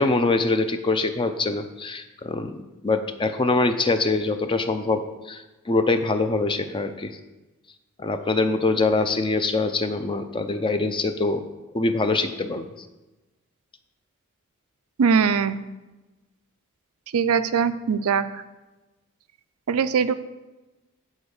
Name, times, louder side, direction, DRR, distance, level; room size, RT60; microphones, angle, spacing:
voice 1, 0.0-2.6 2.8-7.2 8.0-11.4 11.7-12.9, left 3 dB, 25° left, 9 dB, 0.5 m, -24 dB
voice 2, 15.0-15.6 17.1-18.3 19.7-20.1, right 6 dB, 75° right, 12 dB, 0.5 m, -21 dB
9.6 x 4.6 x 6.5 m, 1.1 s
head